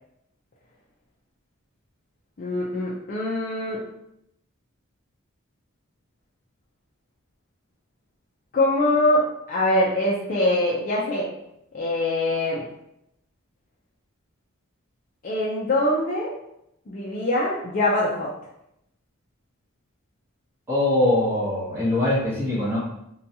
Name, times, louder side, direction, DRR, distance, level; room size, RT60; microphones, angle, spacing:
voice 1, 2.4-3.8 8.5-11.3 11.7-12.7 15.2-16.3 16.9-18.3, left 1 dB, 40° left, -5 dB, 0.4 m, -23 dB
voice 2, 20.7-22.8, left 1 dB, 10° right, -9 dB, 0.8 m, -22 dB
2.7 x 2.2 x 2.7 m, 0.79 s
head